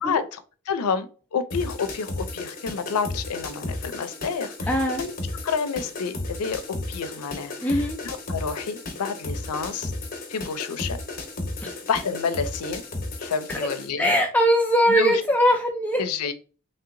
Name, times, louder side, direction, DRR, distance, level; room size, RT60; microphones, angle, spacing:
voice 1, 0.0-0.4 0.7-1.1 1.3-5.1 5.4-9.9 10.3-11.0 11.8-12.8 13.2-14.2 14.9-15.2 16.0-16.3, left 6 dB, 85° left, 11 dB, 0.4 m, -29 dB
sound 1, 1.5-13.9, left 2 dB, 40° left, 0.7 m, -34 dB
voice 2, 4.7-5.0 7.6-8.0 11.6-11.7 13.5-13.6 14.0-16.0, equal, 5° left, 1 dB, 0.4 m, -21 dB
3.2 x 2.7 x 2.5 m, 0.36 s
head